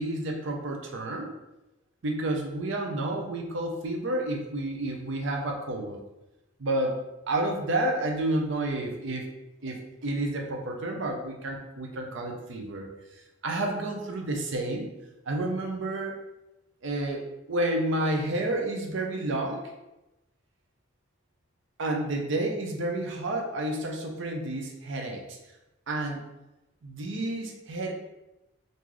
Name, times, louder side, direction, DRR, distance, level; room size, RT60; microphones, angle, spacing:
voice 1, 0.0-1.3 2.0-6.0 6.6-7.0 7.3-9.3 9.6-12.9 13.4-14.9 15.3-16.1 16.8-17.2 17.5-19.6 21.8-25.4 25.9-26.2 26.8-27.9, right 1 dB, 65° right, 1 dB, 0.6 m, -30 dB
3.7 x 2.6 x 3.0 m, 0.95 s
head